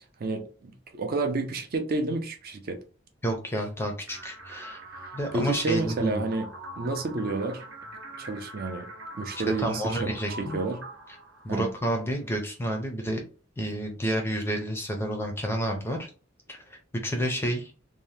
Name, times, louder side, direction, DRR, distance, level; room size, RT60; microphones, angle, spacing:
voice 1, 0.2-2.8 5.0-6.5 6.8-7.6 8.2-8.9 9.2-10.1 10.4-10.8 11.5-11.7, right 3 dB, 45° right, 0.4 m, -30 dB
voice 2, 3.2-4.8 5.1-6.3 9.6-10.6 11.4-13.2 13.6-16.1 16.5-17.7, right 1 dB, 10° left, 0.5 m, -30 dB
sound 1, 4.1-12.0, right 1 dB, 65° right, 0.8 m, -43 dB
2.7 x 2.1 x 3.2 m
head